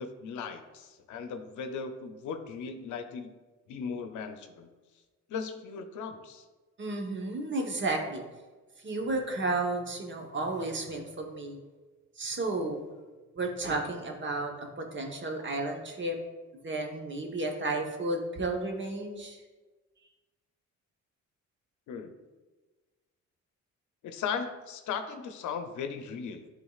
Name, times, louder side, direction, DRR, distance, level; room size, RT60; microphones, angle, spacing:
voice 1, 0.0-3.3 3.7-4.7 5.3-6.4 21.9-22.1 24.0-26.5, left 6 dB, 75° left, 7 dB, 0.7 m, -37 dB
voice 2, 6.8-8.2 8.8-11.6 12.2-12.9 13.3-16.2 16.6-19.4, right 2 dB, 40° right, 2 dB, 1.1 m, -32 dB
10.5 x 3.8 x 2.4 m, 1.3 s
cardioid pair, 90°, 30 cm